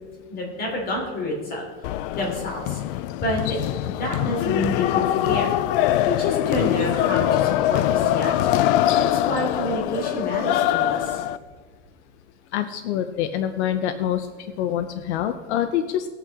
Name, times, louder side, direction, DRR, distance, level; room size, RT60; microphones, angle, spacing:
voice 1, 0.3-1.7 2.1-2.8 3.2-3.6 3.9-5.6 6.0-8.3 9.0-11.2, left 1 dB, 25° left, -1 dB, 3.3 m, -28 dB
sound 1, 1.8-11.4, left 12 dB, 50° left, 0.4 m, -23 dB
voice 2, 12.5-14.3 14.6-16.1, left 10 dB, 75° left, 9 dB, 0.8 m, -25 dB
19.5 x 8.8 x 3.6 m, 1.5 s
supercardioid pair, 165°, 35 cm